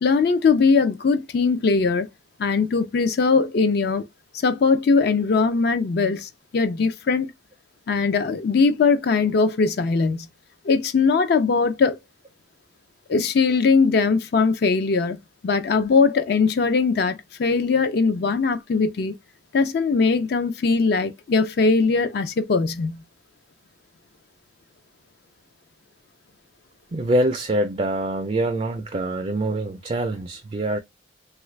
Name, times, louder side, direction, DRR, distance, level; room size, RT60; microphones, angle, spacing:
voice 1, 0.0-2.1 2.4-4.0 4.3-7.3 7.9-10.3 10.6-12.0 13.1-15.2 15.4-19.1 19.5-23.0, left 4 dB, 55° left, 0.4 m, -20 dB
voice 2, 26.9-30.8, right 1 dB, 30° right, 0.3 m, -24 dB
3.1 x 2.4 x 3.1 m
head